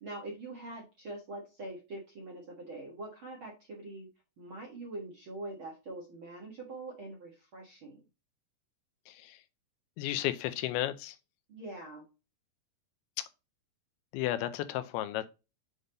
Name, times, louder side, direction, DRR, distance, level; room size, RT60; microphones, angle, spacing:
voice 1, 0.0-4.1 4.4-8.0 11.5-12.1, right 2 dB, 50° right, 1.6 m, -44 dB
voice 2, 9.1-9.4 10.0-11.2 14.1-15.3, left 13 dB, 85° left, 2.5 m, -33 dB
8.0 x 3.6 x 3.9 m
omnidirectional pair, 4.6 m